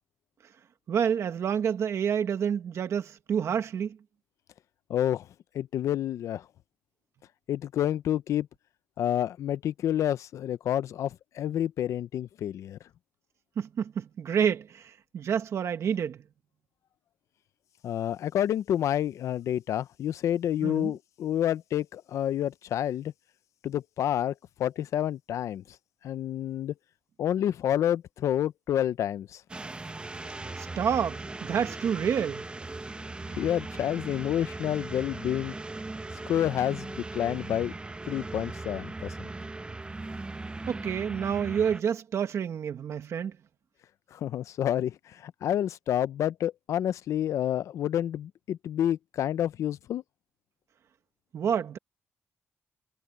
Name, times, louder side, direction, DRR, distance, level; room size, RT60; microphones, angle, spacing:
voice 1, 0.9-4.0 13.6-16.2 20.6-20.9 30.6-32.5 40.7-43.3 51.3-51.8, right 8 dB, 70° right, 1.5 m, -28 dB
voice 2, 4.9-5.3 5.5-6.5 7.5-8.5 9.0-12.8 17.8-23.1 23.6-24.3 24.6-25.8 26.0-26.7 27.2-29.4 33.3-35.6 36.1-37.7 38.1-39.3 44.1-50.0, left 11 dB, 80° left, 0.6 m, -29 dB
sound 1, 29.5-41.8, right 2 dB, 20° right, 0.9 m, -39 dB
cardioid pair, 95°, 5 cm